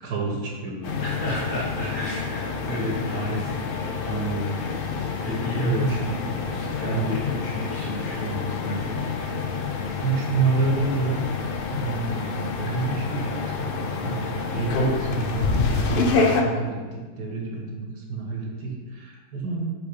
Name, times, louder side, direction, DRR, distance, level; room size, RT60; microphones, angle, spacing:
voice 1, 0.0-1.0 1.8-2.0 5.5-6.1 6.9-7.1 10.0-11.2 11.7-19.7, right 4 dB, 80° right, -1 dB, 1.8 m, -28 dB
sound 1, 0.8-16.4, left 4 dB, 80° left, 0.5 m, -28 dB
voice 2, 1.0-4.8 5.2-6.0 6.4-9.4, equal, 30° left, -5 dB, 1.8 m, -32 dB
5.2 x 5.0 x 4.9 m, 1.4 s
omnidirectional pair, 1.8 m